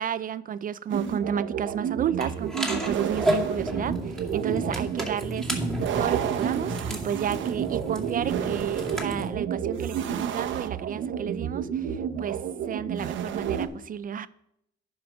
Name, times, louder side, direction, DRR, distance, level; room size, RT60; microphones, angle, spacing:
voice 1, 0.0-5.5 6.0-14.3, right 8 dB, 45° right, 0.4 m, -32 dB
sound 1, 0.9-13.7, right 8 dB, 75° right, 0.8 m, -30 dB
sound 2, 2.2-9.3, equal, ahead, 2.2 m, -32 dB
10.5 x 5.1 x 6.0 m
cardioid pair, 90°, 20 cm